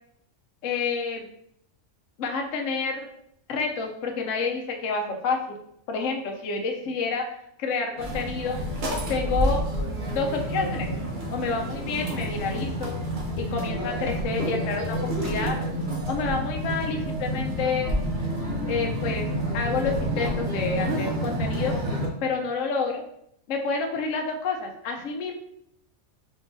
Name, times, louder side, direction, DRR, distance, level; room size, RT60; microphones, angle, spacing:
voice 1, 0.6-1.3 2.2-3.0 3.5-5.6 5.9-7.2 7.6-8.6 9.1-9.6 10.1-10.9 11.3-12.9 13.4-15.6 16.1-17.9 18.7-19.3 19.5-21.7 22.2-23.0 23.5-25.3, left 4 dB, 70° left, 3 dB, 1.0 m, -29 dB
sound 1, 8.0-22.1, equal, 45° right, 0.8 m, -29 dB
4.5 x 3.9 x 2.6 m, 0.74 s
omnidirectional pair, 1.4 m